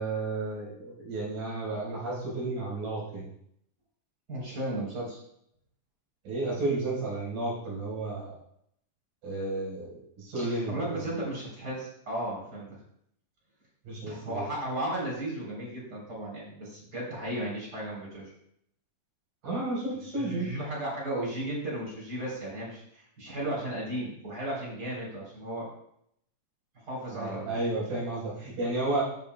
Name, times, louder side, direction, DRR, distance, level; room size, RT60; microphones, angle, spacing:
voice 1, 0.0-3.3 6.2-8.3 9.2-11.0 13.8-14.4 19.4-20.5 27.1-29.0, right 2 dB, 85° right, -5 dB, 5.8 m, -32 dB
voice 2, 4.3-5.2 10.3-12.7 14.1-18.3 20.2-25.7 26.8-27.7, right 1 dB, 30° right, -4 dB, 3.8 m, -35 dB
15.0 x 6.9 x 2.2 m, 0.72 s
omnidirectional pair, 3.6 m